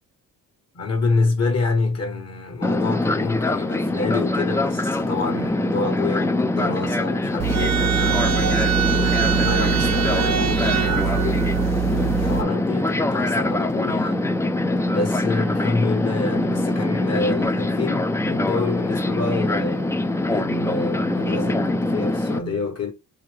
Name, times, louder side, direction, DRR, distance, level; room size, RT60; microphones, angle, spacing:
voice 1, 0.7-8.5 8.9-11.5 11.7-14.2 14.9-19.9 20.2-22.9, left 3 dB, 40° left, 1.2 m, -27 dB
Fixed-wing aircraft airplane, 2.6-22.4, left 2 dB, 10° left, 0.4 m, -23 dB
sound 1, 7.4-12.4, right 11 dB, 45° right, 0.8 m, -23 dB
4.9 x 2.6 x 3.3 m
cardioid pair, 85°, 38 cm